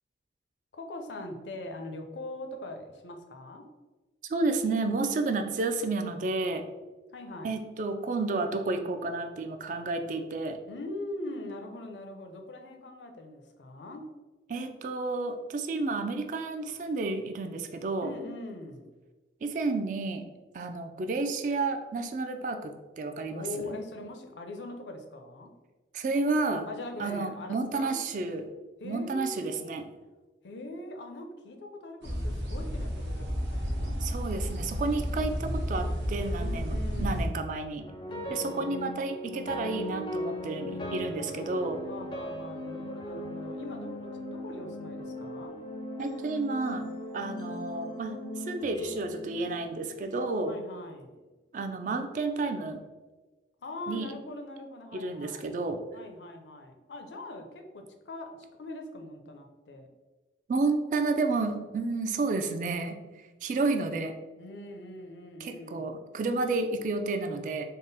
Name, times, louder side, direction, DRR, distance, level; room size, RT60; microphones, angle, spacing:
voice 1, 0.7-3.6 7.1-7.6 10.7-14.0 18.0-18.9 23.3-25.5 26.7-28.0 28.8-29.8 30.4-34.0 36.4-37.4 38.1-38.7 41.9-45.6 50.4-51.1 53.6-55.5 55.9-58.3 58.6-59.9 64.4-65.9, left 2 dB, 80° left, 4 dB, 0.5 m, -42 dB
voice 2, 4.3-6.6 7.4-10.6 14.5-18.1 19.4-20.3 20.5-23.8 25.9-26.7 27.0-28.5 28.8-29.8 34.0-37.8 38.3-41.8 46.0-46.9 47.1-50.5 51.5-52.8 53.9-54.1 54.9-55.8 60.5-63.0 63.4-64.2 65.4-67.6, right 3 dB, 45° right, 6 dB, 0.3 m, -31 dB
sound 1, 32.0-37.3, equal, 75° right, 0.8 m, -32 dB
sound 2, 37.8-50.1, equal, 25° left, 0.4 m, -38 dB
3.6 x 2.0 x 3.9 m, 1.2 s
head